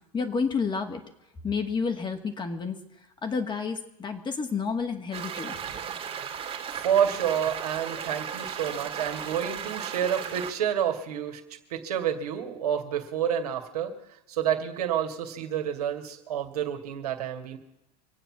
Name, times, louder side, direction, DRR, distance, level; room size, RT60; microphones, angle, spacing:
voice 1, 0.1-1.0 1.4-2.8 3.2-5.6, left 5 dB, 20° left, 6 dB, 2.0 m, -30 dB
sound 1, 5.1-10.5, right 8 dB, 30° right, 2.3 m, -36 dB
voice 2, 6.7-11.4 11.7-13.9 14.3-17.6, right 9 dB, 65° right, 4 dB, 2.3 m, -29 dB
25.0 x 9.1 x 6.1 m, 0.89 s
figure-of-eight pair, 85°, 21 cm